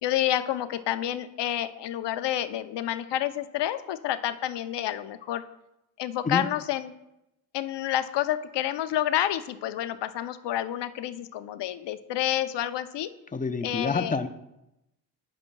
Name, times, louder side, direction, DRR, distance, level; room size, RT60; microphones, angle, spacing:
voice 1, 0.0-5.4 6.0-6.9 7.5-13.1 13.6-14.2, left 12 dB, 60° left, 11 dB, 0.7 m, -29 dB
voice 2, 13.3-14.3, left 4 dB, 15° left, 9 dB, 0.7 m, -27 dB
11.5 x 8.5 x 2.3 m, 0.90 s
supercardioid pair, 55°, 48 cm